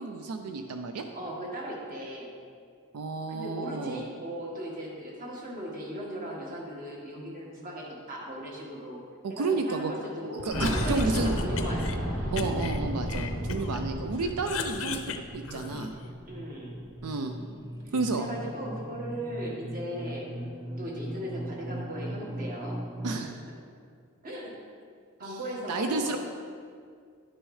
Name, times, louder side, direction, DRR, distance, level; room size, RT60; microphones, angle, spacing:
voice 1, 0.0-1.0 2.9-4.0 9.2-9.9 10.4-11.3 12.3-15.9 17.0-17.3 17.9-18.3 23.0-23.4 25.2-25.4 25.7-26.2, right 3 dB, 90° right, 5 dB, 0.5 m, -31 dB
voice 2, 1.1-2.3 3.3-9.0 9.3-12.1 13.8-14.0 16.3-16.7 17.8-20.3 20.8-22.8 23.1-23.2 24.2-24.5 25.2-26.2, equal, 40° right, -3 dB, 1.5 m, -38 dB
Cough, 10.4-12.0 12.4-13.8 14.2-16.1, left 5 dB, 65° left, 0.5 m, -37 dB
Boom, 10.5-15.3 15.5-15.6 16.7-16.8, equal, 65° right, 2.1 m, -31 dB
sound 1, 14.3-23.2, right 1 dB, 15° right, 0.4 m, -39 dB
11.0 x 6.2 x 3.2 m, 2.2 s
head